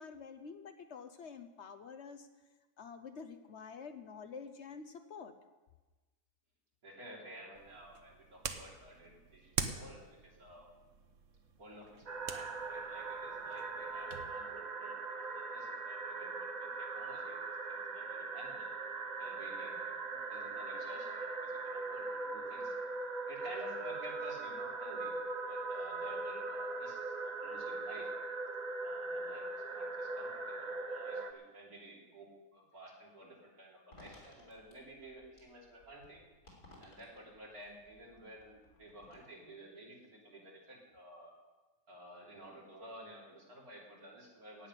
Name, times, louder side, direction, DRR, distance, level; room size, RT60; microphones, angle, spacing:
voice 1, 0.0-2.3 2.8-5.3, left 5 dB, 55° left, 9 dB, 0.9 m, -48 dB
voice 2, 6.8-10.7 11.5-18.7 19.2-22.7 23.3-25.1 25.5-28.1 28.8-36.2 36.8-41.3 41.9-44.7, right 1 dB, 80° right, -3 dB, 3.9 m, -53 dB
sound 1, 7.5-14.3, right 6 dB, 60° right, 1.3 m, -45 dB
sound 2, 12.1-31.3, right 3 dB, 35° right, 0.7 m, -40 dB
sound 3, 33.9-39.2, left 2 dB, 85° left, 4.1 m, -60 dB
16.5 x 5.8 x 9.6 m, 1.2 s
omnidirectional pair, 1.5 m